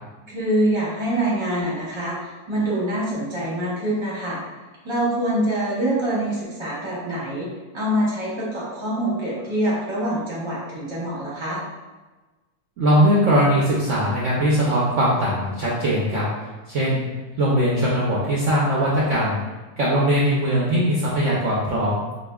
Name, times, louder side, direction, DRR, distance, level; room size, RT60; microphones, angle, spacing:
voice 1, 0.3-4.4 4.8-7.5 7.7-11.6, right 1 dB, 20° right, -8 dB, 0.8 m, -25 dB
voice 2, 12.8-16.3 16.7-17.1 17.4-19.4 19.8-22.0, equal, 65° right, -6 dB, 0.8 m, -20 dB
5.0 x 2.4 x 2.3 m, 1.2 s
omnidirectional pair, 1.8 m